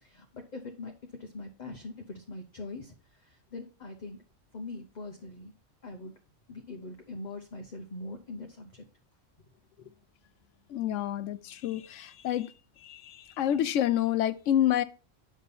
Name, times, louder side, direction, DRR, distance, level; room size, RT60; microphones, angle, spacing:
voice 1, 0.0-0.9 1.2-2.9 3.2-4.2 4.5-5.5 5.8-6.1 6.5-8.8, left 2 dB, 40° left, 1.0 m, -42 dB
voice 2, 10.7-12.5 12.8-14.8, left 11 dB, 80° left, 0.9 m, -28 dB
8.7 x 5.4 x 4.2 m
omnidirectional pair, 1.3 m